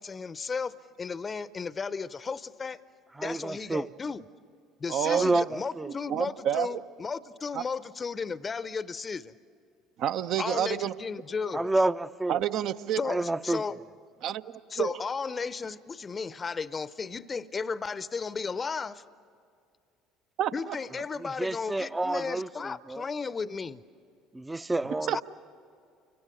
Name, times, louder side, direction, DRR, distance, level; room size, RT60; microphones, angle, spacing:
voice 1, 0.0-2.8 3.2-4.2 4.8-9.3 10.4-11.7 13.0-13.8 14.7-19.0 20.5-23.8 25.1-25.2, left 5 dB, 30° left, 0.7 m, -34 dB
voice 2, 3.1-3.9 5.1-5.9 11.5-12.5 13.0-13.9 21.2-23.1 24.3-25.2, right 2 dB, 15° right, 0.6 m, -29 dB
voice 3, 4.9-5.4 5.9-6.8 7.5-7.6 10.0-10.9 12.3-13.0 14.2-14.9 20.4-20.8 25.1-25.2, right 10 dB, 55° right, 0.7 m, -29 dB
30.0 x 25.5 x 6.6 m
figure-of-eight pair, 60°, 0 cm